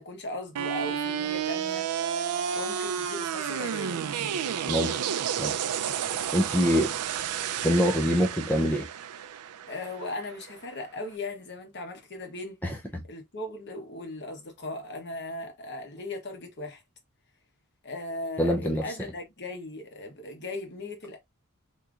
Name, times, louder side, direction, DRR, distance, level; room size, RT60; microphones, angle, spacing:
voice 1, 0.0-1.9 2.5-4.1 9.7-12.6 13.1-16.8 17.8-21.2, left 2 dB, 50° left, 1.2 m, -38 dB
sound 1, 0.6-10.6, right 8 dB, 85° right, 0.4 m, -31 dB
voice 2, 4.7-5.0 5.4-5.5 6.3-6.9 7.6-8.9 12.6-13.0 18.4-18.9, equal, 5° left, 0.4 m, -25 dB
3.6 x 2.9 x 2.4 m
head